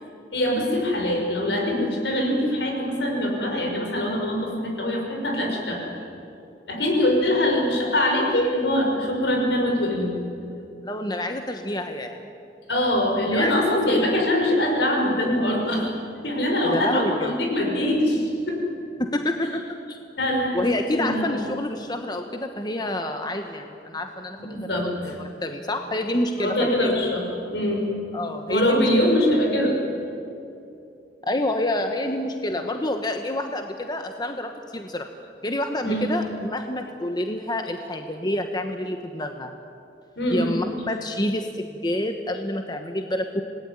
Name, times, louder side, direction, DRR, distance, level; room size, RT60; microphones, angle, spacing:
voice 1, 0.3-5.8 6.7-10.2 12.7-15.9 16.2-18.6 20.2-20.6 20.9-21.4 24.4-25.2 26.3-27.9 28.5-29.8 35.8-36.1 40.2-40.6, left 1 dB, 70° left, 1 dB, 6.0 m, -23 dB
voice 2, 10.8-12.2 13.3-13.5 16.6-17.3 19.0-19.6 19.9-20.0 20.5-26.9 28.1-29.1 31.3-35.1 35.4-39.5 40.3-43.4, left 1 dB, 25° left, 5 dB, 1.2 m, -28 dB
27.0 x 19.0 x 9.7 m, 2.7 s
head